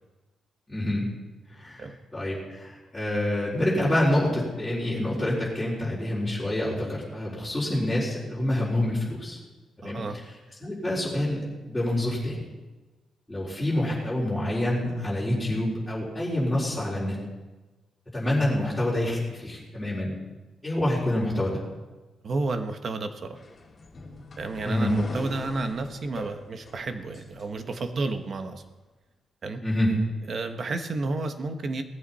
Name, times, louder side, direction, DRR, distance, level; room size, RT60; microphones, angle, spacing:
voice 1, 0.7-1.1 1.5-9.4 9.8-10.0 10.6-12.5 13.3-17.2 18.1-20.1 20.6-21.6 24.6-24.9 29.6-29.9, left 1 dB, 5° left, -10 dB, 4.3 m, -27 dB
voice 2, 9.8-10.2 22.2-23.4 24.4-28.6 29.4-29.6 30.3-31.8, right 3 dB, 40° right, 7 dB, 1.3 m, -31 dB
sound 1, 23.3-28.0, left 3 dB, 30° left, 2.5 m, -42 dB
18.5 x 14.5 x 4.3 m, 1.2 s
wide cardioid pair, 160°, 0 cm